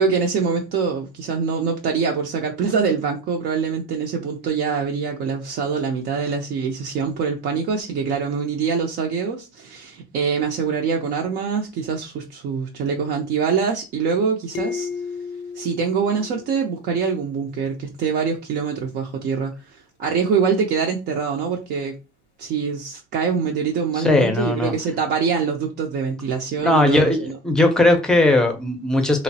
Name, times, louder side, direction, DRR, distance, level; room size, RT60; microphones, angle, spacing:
voice 1, 0.0-14.9 15.5-22.0 22.4-27.3, right 5 dB, 60° right, 0.5 m, -24 dB
sound 1, 14.5-17.1, left 5 dB, 75° left, 0.5 m, -33 dB
voice 2, 24.0-24.7 26.6-27.2 27.4-29.2, left 2 dB, 5° left, 0.6 m, -18 dB
3.0 x 2.0 x 2.6 m
cardioid pair, 130°, 20 cm